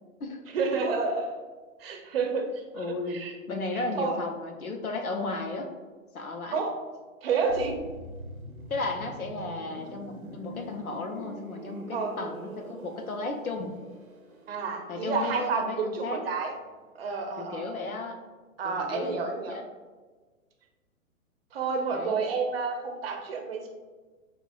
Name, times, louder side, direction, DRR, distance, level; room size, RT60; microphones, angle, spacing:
voice 1, 0.5-1.4 1.8-2.5 2.8-3.3 3.7-4.2 6.5-6.8 7.2-7.8 11.9-12.1 14.5-16.5 17.0-17.8 18.6-19.6 21.5-23.7, right 4 dB, 45° right, 3 dB, 0.7 m, -29 dB
voice 2, 2.7-3.2 3.5-5.7 6.1-6.6 8.7-13.8 14.9-16.2 17.4-18.2 18.6-19.2 19.5-19.7 21.9-22.2, left 3 dB, 85° left, 4 dB, 0.8 m, -34 dB
sound 1, 7.5-17.2 17.4-17.6, right 1 dB, 85° right, 0.7 m, -45 dB
6.5 x 2.4 x 2.3 m, 1.3 s
figure-of-eight pair, 115°, 42 cm